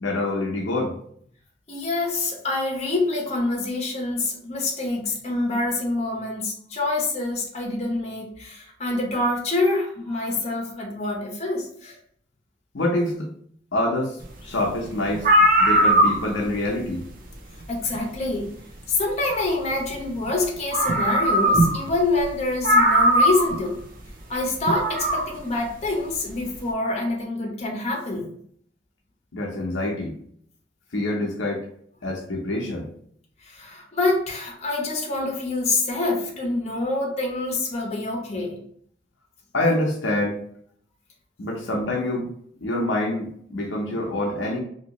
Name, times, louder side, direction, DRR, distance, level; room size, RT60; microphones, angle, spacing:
voice 1, 0.0-1.0 12.7-13.3 13.7-15.3 15.6-17.0 29.3-30.1 30.9-31.7 32.0-32.9 39.5-40.4 41.4-42.3 42.6-44.6, left 1 dB, 75° left, -1 dB, 0.7 m, -26 dB
voice 2, 1.7-12.0 17.7-18.5 18.9-23.8 24.3-28.3 33.4-38.6, left 2 dB, 35° left, -1 dB, 0.9 m, -26 dB
sound 1, 14.8-14.9 15.1-16.5 17.9-18.0 20.3-20.4 20.7-21.9 22.2-22.3 22.6-23.6 24.7-25.3, right 1 dB, 50° right, 0.5 m, -19 dB
2.9 x 2.8 x 2.9 m, 0.63 s
head